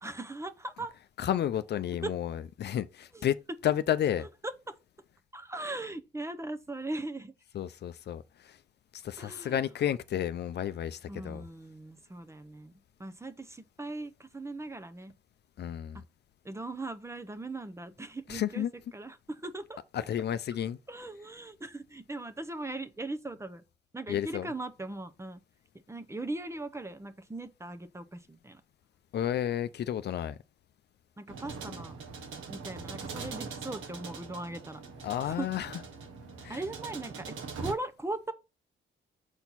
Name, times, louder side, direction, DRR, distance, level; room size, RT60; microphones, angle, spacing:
voice 1, 0.0-0.9 2.0-2.1 3.1-3.3 4.2-4.7 5.3-7.3 9.2-9.7 11.1-12.7 13.0-15.1 15.9-16.0 16.4-19.8 20.9-23.6 23.9-25.4 25.9-28.6 31.2-32.0 32.5-34.8 35.2-35.5 36.5-38.3, right 2 dB, 15° right, 0.8 m, -39 dB
voice 2, 1.2-3.4 3.6-4.3 7.5-8.6 8.9-11.4 15.6-16.0 18.3-18.7 19.9-20.8 24.1-24.5 29.1-30.4 35.0-35.7 36.4-36.6, left 10 dB, 55° left, 0.6 m, -31 dB
sound 1, 31.3-37.7, right 5 dB, 80° right, 1.6 m, -42 dB
6.9 x 4.4 x 4.1 m
cardioid pair, 90°, 20 cm